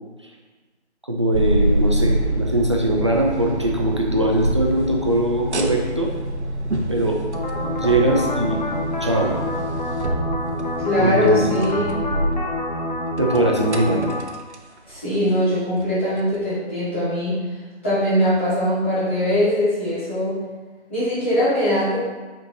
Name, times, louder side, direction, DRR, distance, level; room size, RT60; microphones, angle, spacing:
voice 1, 1.1-6.1 6.9-7.2 7.6-8.6 9.0-9.3 11.0-11.6 13.2-14.0, right 1 dB, 25° right, -1 dB, 0.6 m, -21 dB
sound 1, 1.3-12.8 13.2-14.6 14.9-15.2 15.8-15.9 16.3-16.4, right 1 dB, 75° right, 1.0 m, -26 dB
sound 2, 7.3-14.2, left 1 dB, 40° left, 0.9 m, -28 dB
voice 2, 10.8-11.9 14.9-17.4 17.8-20.4 20.9-22.0, left 1 dB, 10° left, -11 dB, 1.2 m, -21 dB
5.6 x 4.6 x 4.0 m, 1.3 s
figure-of-eight pair, 170°, 34 cm